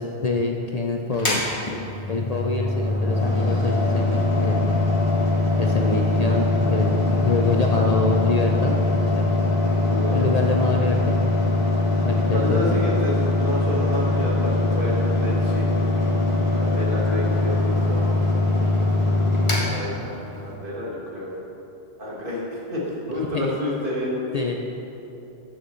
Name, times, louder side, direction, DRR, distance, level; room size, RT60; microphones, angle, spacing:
voice 1, 0.0-1.4 2.1-4.7 5.6-9.3 10.1-11.2 12.0-12.7 23.3-23.5 24.3-24.6, left 3 dB, 50° left, 1 dB, 0.5 m, -25 dB
Mechanical fan, 1.1-20.5, left 2 dB, 30° left, 1.3 m, -22 dB
voice 2, 9.7-10.2 12.3-15.7 16.5-18.1 19.6-21.3 22.0-24.2, left 1 dB, 55° right, -5 dB, 1.9 m, -29 dB
13.5 x 6.4 x 3.1 m, 3.0 s
omnidirectional pair, 1.1 m